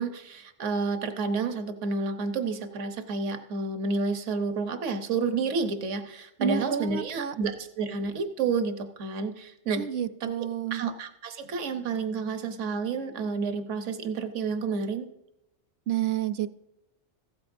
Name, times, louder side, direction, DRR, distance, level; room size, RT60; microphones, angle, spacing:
voice 1, 0.0-9.8 10.2-10.3 10.7-15.1, right 4 dB, 80° right, 8 dB, 1.2 m, -30 dB
voice 2, 6.4-7.3 9.8-10.8 15.9-16.5, right 9 dB, 65° right, 13 dB, 0.7 m, -29 dB
15.5 x 13.0 x 2.6 m, 0.85 s
omnidirectional pair, 1.2 m